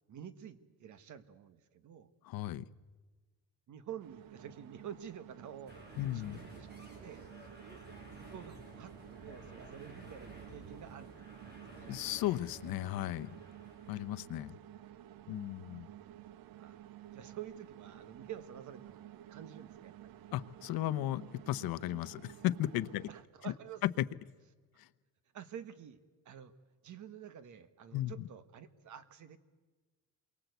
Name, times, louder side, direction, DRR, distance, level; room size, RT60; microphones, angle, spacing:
voice 1, 0.1-2.1 3.7-5.8 6.1-6.7 7.0-7.2 8.1-12.0 14.6-14.7 16.3-20.2 23.1-23.9 25.3-26.5 26.8-29.4, right 9 dB, 55° right, 12 dB, 1.5 m, -49 dB
voice 2, 2.2-2.7 6.0-6.4 11.9-13.4 13.9-14.6 15.3-15.9 20.3-23.1 23.4-23.5 23.8-23.9 24.8-24.9 27.9-28.1, left 14 dB, 80° left, 13 dB, 0.9 m, -35 dB
sound 1, 4.0-23.2, right 12 dB, 75° right, 0.8 m, -53 dB
sound 2, 5.7-14.2, right 1 dB, 30° right, 5.4 m, -53 dB
27.5 x 23.5 x 8.1 m, 1.3 s
cardioid pair, 165°, 36 cm